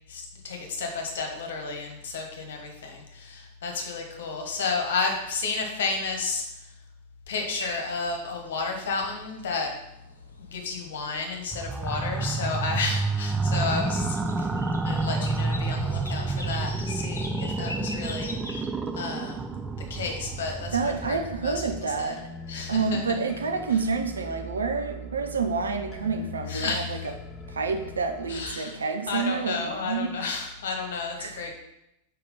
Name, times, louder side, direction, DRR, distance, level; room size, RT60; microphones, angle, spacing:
voice 1, 0.1-6.4 7.3-9.7 10.4-14.5 14.8-18.7 18.9-19.4 19.9-21.6 22.0-22.1 22.5-22.8 26.5-27.0 28.3-28.7 29.1-31.5, left 4 dB, 60° left, 3 dB, 1.4 m, -32 dB
sound 1, 7.6-18.7, left 2 dB, 75° left, 0.8 m, -44 dB
sound 2, 11.5-22.0, right 3 dB, 10° right, 0.4 m, -29 dB
sound 3, 19.7-28.5, left 2 dB, 25° left, 0.9 m, -42 dB
voice 2, 20.7-22.3 22.7-27.1 27.5-30.2 31.2-31.5, right 4 dB, 70° right, 5 dB, 0.7 m, -28 dB
4.7 x 4.6 x 5.4 m, 0.83 s
figure-of-eight pair, 90°, 0 cm